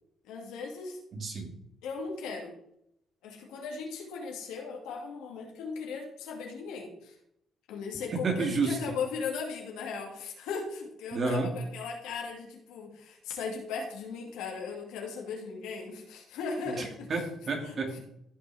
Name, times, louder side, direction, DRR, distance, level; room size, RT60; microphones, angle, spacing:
voice 1, 0.2-1.0 1.8-2.6 3.2-7.2 7.7-17.1 17.6-18.0, left 5 dB, 90° left, 0 dB, 2.4 m, -38 dB
voice 2, 1.1-1.5 8.1-8.8 11.1-11.5 16.7-18.0, right 3 dB, 45° right, 3 dB, 2.3 m, -30 dB
14.5 x 5.6 x 3.6 m, 0.77 s
cardioid pair, 90°, 0 cm